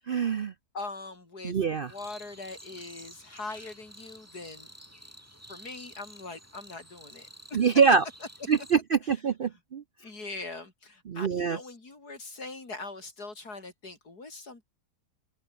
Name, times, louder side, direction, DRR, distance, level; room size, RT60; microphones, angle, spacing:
voice 1, 0.1-0.5 1.4-1.9 7.5-8.0 8.5-9.8 11.1-11.6, right 6 dB, 55° right, 0.6 m, -24 dB
voice 2, 0.7-4.7 5.5-7.7 9.0-9.2 10.0-14.6, left 3 dB, 80° left, 5.1 m, -42 dB
sound 1, 1.9-8.7, equal, 10° right, 6.0 m, -50 dB
omnidirectional pair, 1.7 m